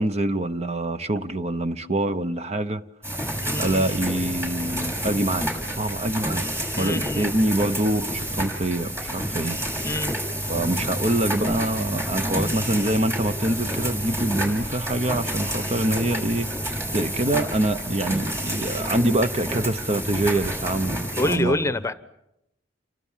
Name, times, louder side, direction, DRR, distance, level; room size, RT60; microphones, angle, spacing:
voice 1, 0.0-2.8 3.6-6.4 6.8-9.6 10.5-21.6, right 1 dB, 35° right, 1.0 m, -25 dB
sound 1, 3.0-21.4, equal, 15° right, 6.5 m, -29 dB
voice 2, 3.4-3.9 6.8-7.3 9.8-10.1 21.2-21.9, left 1 dB, 15° left, 1.0 m, -26 dB
29.0 x 24.5 x 7.4 m
head